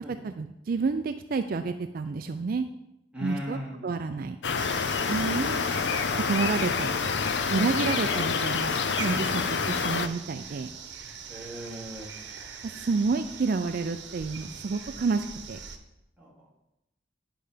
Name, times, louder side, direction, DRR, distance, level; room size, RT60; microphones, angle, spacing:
voice 1, 0.1-2.7 3.2-4.4 5.1-5.6 6.1-6.9 7.5-10.7 12.6-15.6, right 4 dB, 55° right, 9 dB, 0.4 m, -29 dB
voice 2, 3.1-3.9 11.3-12.1 16.2-16.3, equal, 5° right, -5 dB, 2.4 m, -38 dB
sound 1, 4.4-10.1, left 5 dB, 80° left, 0.6 m, -27 dB
sound 2, 4.6-15.8, right 6 dB, 85° right, 0.9 m, -42 dB
10.0 x 5.6 x 5.0 m, 0.88 s
head